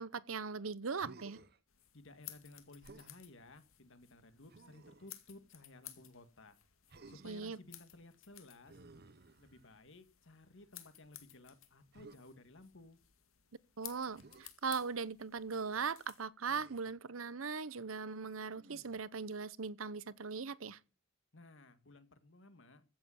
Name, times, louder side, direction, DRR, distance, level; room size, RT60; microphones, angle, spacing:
voice 1, 0.0-1.4 7.2-7.6 13.8-20.8, right 5 dB, 80° right, 0.9 m, -39 dB
Human voice, 1.0-1.6 2.8-3.2 4.5-5.2 6.9-7.5 8.6-9.9 11.9-12.2 14.2-14.5 16.4-17.0 18.5-19.1, right 3 dB, 50° right, 1.1 m, -57 dB
sound 1, 1.7-16.3, left 13 dB, 85° left, 2.1 m, -57 dB
voice 2, 1.9-6.6 7.1-8.8 9.4-13.0 21.3-22.8, left 2 dB, 65° left, 1.9 m, -57 dB
15.0 x 7.7 x 7.1 m
head